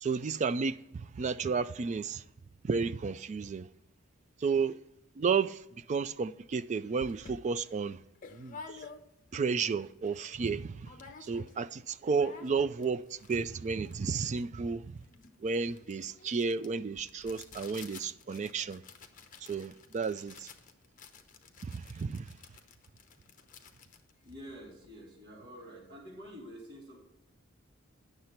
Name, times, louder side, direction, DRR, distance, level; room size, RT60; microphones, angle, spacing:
voice 1, 0.0-2.2 2.6-3.7 4.4-4.8 5.2-5.6 5.9-8.0 8.3-8.6 9.3-10.9 11.2-15.0 15.4-18.8 19.4-20.5 21.6-22.3, right 5 dB, 35° right, 0.3 m, -32 dB
sound 1, 6.5-6.6 7.0-9.4 9.8-9.9 10.1-10.5 10.8-11.7 11.9-25.0, left 5 dB, 40° left, 0.8 m, -52 dB
voice 2, 24.2-27.0, equal, 50° right, 3.2 m, -48 dB
9.5 x 6.7 x 4.4 m
head